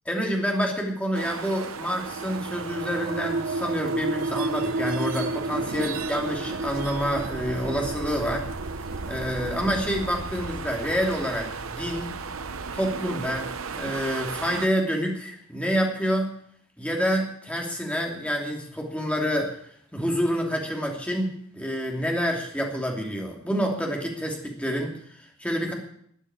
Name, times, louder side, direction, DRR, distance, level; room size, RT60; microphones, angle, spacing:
voice 1, 0.1-8.5 9.1-12.1 12.7-16.3 16.8-19.5 19.9-25.7, equal, 5° left, 0 dB, 2.8 m, -28 dB
sound 1, 1.1-14.7, right 4 dB, 85° right, 1.0 m, -36 dB
sound 2, 2.1-13.3, right 2 dB, 55° right, 0.6 m, -33 dB
13.0 x 9.1 x 9.5 m, 0.67 s
head